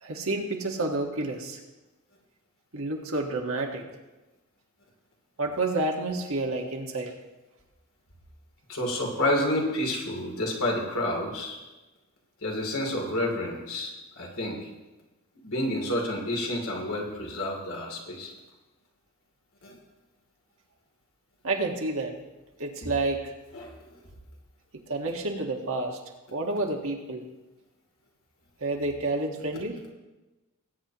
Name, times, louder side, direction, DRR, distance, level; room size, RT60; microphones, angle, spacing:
voice 1, 0.0-1.6 2.7-3.8 5.4-7.1 21.4-22.2 22.6-23.3 24.9-26.0 26.3-27.2 28.6-29.8, right 2 dB, 65° right, 1 dB, 1.6 m, -29 dB
voice 2, 8.7-11.6 12.4-13.9 14.2-14.6 15.4-18.3 19.6-19.7 23.5-23.7, left 1 dB, 65° left, 0 dB, 2.9 m, -29 dB
20.0 x 9.1 x 3.0 m, 1.1 s
head